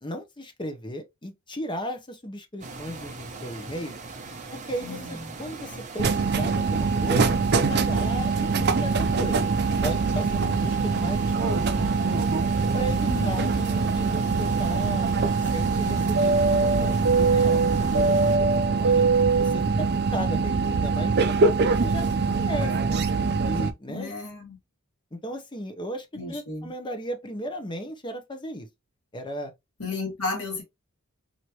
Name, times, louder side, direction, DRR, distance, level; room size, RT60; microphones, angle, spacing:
voice 1, 0.0-3.9 4.5-9.5 9.8-12.2 12.7-15.1 15.5-19.0 19.4-21.5 21.8-23.0 23.4-24.1 25.1-28.7 29.1-29.5, equal, 20° left, 0.8 m, -36 dB
sound 1, 2.6-18.4, right 3 dB, 35° right, 1.0 m, -40 dB
voice 2, 4.8-5.4 13.1-13.5 23.9-24.6 26.1-26.7 29.8-30.6, left 3 dB, 75° left, 2.0 m, -34 dB
sound 2, 6.0-23.7, right 4 dB, 50° right, 0.5 m, -23 dB
4.6 x 2.8 x 2.9 m
head